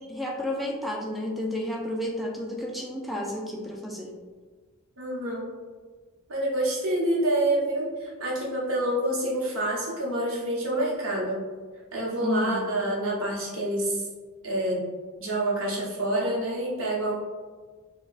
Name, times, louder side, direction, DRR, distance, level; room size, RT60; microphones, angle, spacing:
voice 1, 0.1-4.1 12.2-12.9, left 1 dB, ahead, -1 dB, 0.3 m, -31 dB
voice 2, 5.0-5.4 6.3-11.4 11.9-14.0 14.4-14.8 15.2-17.1, right 1 dB, 65° right, -4 dB, 0.9 m, -27 dB
4.5 x 2.2 x 2.4 m, 1.4 s
head